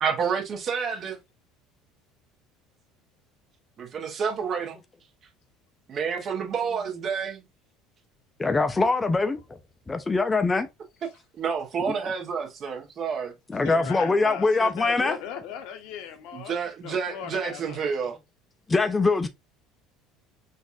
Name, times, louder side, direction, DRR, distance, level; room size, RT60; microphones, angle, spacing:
voice 1, 0.0-1.2 3.8-4.8 5.9-7.4 11.4-13.3 16.3-18.2, right 6 dB, 50° right, 1.1 m, -29 dB
voice 2, 8.4-9.6 9.9-10.7 11.9-12.0 13.5-15.2 18.7-19.3, left 3 dB, 20° left, 0.4 m, -23 dB
voice 3, 13.6-16.5 16.8-17.9, left 8 dB, 70° left, 0.8 m, -37 dB
4.0 x 2.5 x 2.5 m
hypercardioid pair, 80°, 0 cm